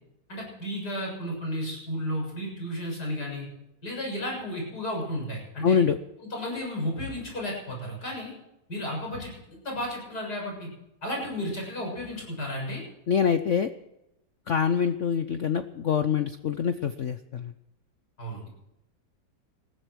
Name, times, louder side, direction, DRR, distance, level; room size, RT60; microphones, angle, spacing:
voice 1, 0.3-3.5 3.8-5.8 6.2-8.3 8.7-10.7 11.0-12.8 18.2-18.5, equal, 50° left, -1 dB, 7.7 m, -33 dB
voice 2, 5.6-6.0 13.1-13.7 14.5-17.5, left 7 dB, 70° left, 10 dB, 0.7 m, -25 dB
20.5 x 14.5 x 4.7 m, 0.87 s
omnidirectional pair, 2.2 m